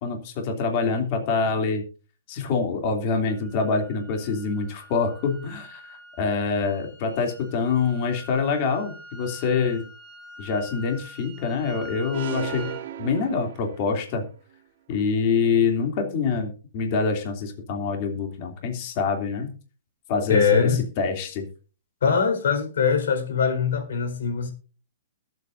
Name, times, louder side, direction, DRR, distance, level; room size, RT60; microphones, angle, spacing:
voice 1, 0.0-1.8 2.3-9.8 10.4-14.2 14.9-19.5 20.1-20.7 21.0-21.4, left 5 dB, 35° left, 2.9 m, -25 dB
sound 1, 3.2-12.8, equal, 5° left, 4.4 m, -45 dB
sound 2, 12.1-14.1, right 11 dB, 55° right, 1.3 m, -35 dB
voice 2, 20.3-20.8 22.0-24.5, left 6 dB, 70° left, 4.6 m, -22 dB
21.5 x 8.4 x 2.7 m
hypercardioid pair, 165°, 0 cm